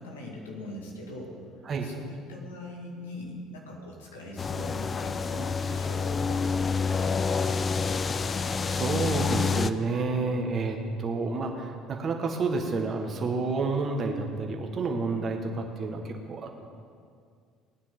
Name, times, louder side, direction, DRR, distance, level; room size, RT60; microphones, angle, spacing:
voice 1, 0.0-1.3 1.8-7.6, left 1 dB, 90° left, -1 dB, 2.2 m, -42 dB
sound 1, 4.4-9.7, left 5 dB, 35° left, 0.5 m, -28 dB
voice 2, 8.6-16.5, right 3 dB, 45° right, 3 dB, 1.7 m, -29 dB
19.0 x 9.6 x 3.9 m, 2.2 s
hypercardioid pair, 65°, 0 cm